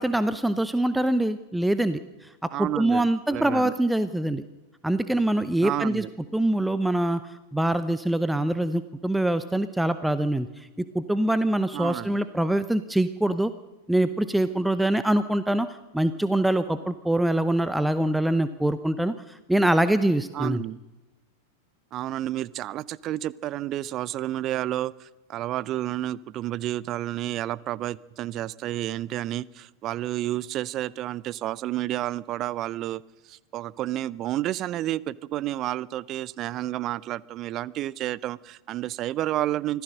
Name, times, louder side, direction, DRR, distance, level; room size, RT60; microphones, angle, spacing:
voice 1, 0.0-4.4 4.8-6.1 6.3-7.2 7.5-13.5 13.9-20.6, right 1 dB, 5° right, 12 dB, 0.8 m, -24 dB
voice 2, 2.5-3.0 3.3-3.7 5.6-6.1 11.7-12.2 20.3-20.8 21.9-24.9 25.3-33.0 33.3-39.8, right 14 dB, 35° right, 22 dB, 0.6 m, -30 dB
25.5 x 16.0 x 6.4 m, 1.1 s
figure-of-eight pair, 90°, 0 cm